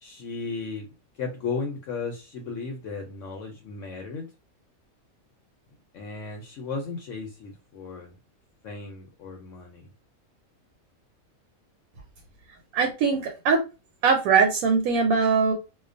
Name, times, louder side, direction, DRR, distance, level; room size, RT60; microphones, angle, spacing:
voice 1, 0.0-0.9 1.2-4.3 5.9-8.1 8.6-9.9, left 4 dB, 70° left, 0.8 m, -35 dB
voice 2, 12.7-13.6 14.0-15.5, right 5 dB, 80° right, 1.0 m, -21 dB
2.3 x 2.2 x 2.5 m
omnidirectional pair, 1.5 m